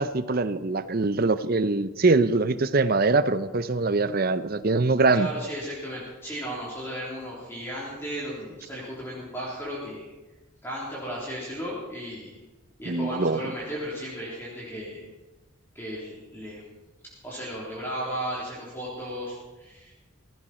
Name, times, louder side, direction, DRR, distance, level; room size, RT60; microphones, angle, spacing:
voice 1, 0.0-5.3 12.9-13.4, right 3 dB, 45° right, 13 dB, 0.6 m, -23 dB
voice 2, 5.1-10.1 10.6-12.4 12.8-15.1 15.8-16.6 17.2-19.9, equal, 10° left, -6 dB, 3.6 m, -35 dB
17.0 x 16.0 x 4.4 m, 1.1 s
head